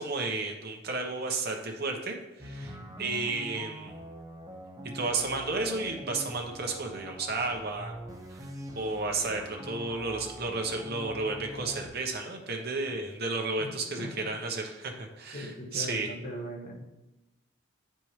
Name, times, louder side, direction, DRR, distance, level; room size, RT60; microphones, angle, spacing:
voice 1, 0.0-3.9 4.9-7.9 8.3-8.5 8.8-16.1, right 3 dB, 50° right, 2 dB, 1.0 m, -32 dB
sound 1, 2.4-11.9, equal, 15° right, 0.7 m, -44 dB
voice 2, 2.6-2.9 13.6-13.7 14.0-14.3 15.3-16.9, equal, 40° left, 1 dB, 1.1 m, -40 dB
8.6 x 4.5 x 3.2 m, 0.97 s
head